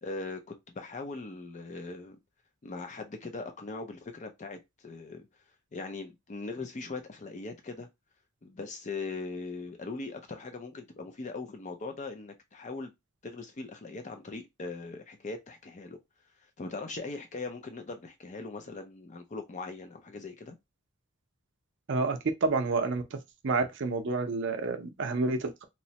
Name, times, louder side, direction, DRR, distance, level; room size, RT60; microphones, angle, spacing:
voice 1, 0.0-2.2 2.6-5.3 5.7-7.9 8.4-12.9 13.2-16.0 16.6-20.6, left 3 dB, 35° left, 0.5 m, -40 dB
voice 2, 21.9-23.2 23.4-25.6, right 3 dB, 60° right, 0.5 m, -29 dB
3.0 x 2.1 x 2.8 m
head